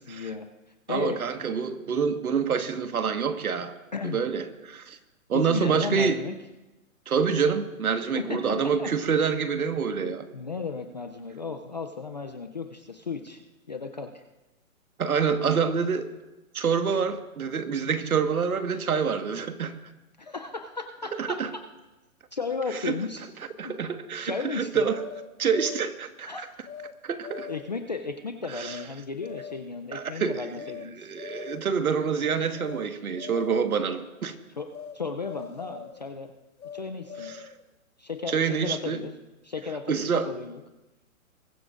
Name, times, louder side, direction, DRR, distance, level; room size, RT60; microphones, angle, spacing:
voice 1, 0.1-0.5 0.9-1.2 3.9-4.2 5.3-6.3 8.1-8.9 10.0-13.4 13.7-14.2 20.2-21.6 22.3-23.2 23.6-23.7 24.2-24.8 26.3-26.5 27.5-31.1 34.6-34.7 34.9-36.3 36.7-37.3 38.0-39.1 39.4-40.6, left 4 dB, 35° left, 6 dB, 0.4 m, -34 dB
voice 2, 0.9-3.7 4.0-5.0 5.3-6.2 7.1-10.3 15.0-16.1 16.5-19.7 21.2-21.5 22.7-22.9 23.6-25.0 25.4-26.3 27.0-27.5 28.5-28.8 29.9-30.5 30.9-34.3 37.2-37.4 38.3-39.0 39.9-40.3, right 6 dB, 85° right, 8 dB, 1.5 m, -27 dB
sound 1, 24.9-26.0 26.7-26.9 27.2-27.8 28.6-28.9 29.2-29.8 30.5-30.9 31.2-31.8 32.5-32.9 33.2-33.8 34.7-35.0 35.2-36.0 36.6-37.6, left 8 dB, 85° left, 1.2 m, -41 dB
22.0 x 14.0 x 2.5 m, 1.1 s
hypercardioid pair, 160°, 42 cm